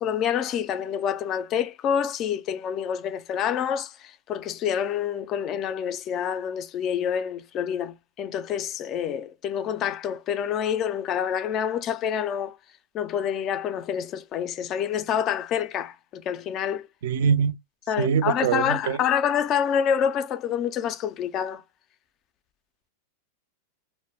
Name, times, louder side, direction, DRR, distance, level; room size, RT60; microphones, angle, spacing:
voice 1, 0.0-12.6 12.9-16.9 17.9-21.6, left 8 dB, 30° left, 0.3 m, -27 dB
voice 2, 17.0-17.5 18.0-19.0, right 7 dB, 70° right, 0.4 m, -23 dB
2.2 x 2.1 x 3.2 m
supercardioid pair, 145°, 0 cm